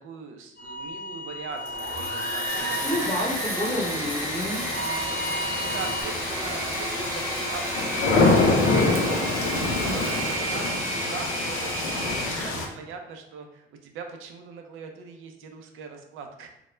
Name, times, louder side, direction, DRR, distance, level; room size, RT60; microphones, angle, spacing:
voice 1, 0.0-3.0 5.5-16.6, right 5 dB, 85° right, 4 dB, 0.4 m, -41 dB
sound 1, 0.6-4.2 4.6-6.0, equal, 60° left, 0.8 m, -34 dB
Engine / Mechanisms, 1.5-12.7, right 1 dB, 15° right, 0.8 m, -31 dB
sound 2, 2.5-12.7, left 3 dB, 85° left, 0.5 m, -27 dB
voice 2, 2.8-4.6 11.8-12.1, left 1 dB, 15° left, -5 dB, 0.8 m, -30 dB
2.1 x 2.0 x 3.1 m, 0.81 s
cardioid pair, 90°, 20 cm